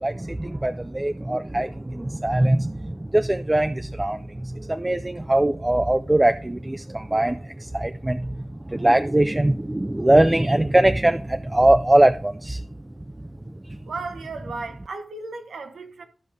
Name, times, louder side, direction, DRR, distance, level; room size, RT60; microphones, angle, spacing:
voice 1, 0.0-4.2 4.7-7.4 7.7-8.2 8.7-12.6, right 1 dB, 15° right, 0.3 m, -21 dB
voice 2, 13.8-16.0, right 3 dB, 85° right, 1.1 m, -35 dB
13.0 x 5.2 x 3.5 m
wide cardioid pair, 120°, 0 cm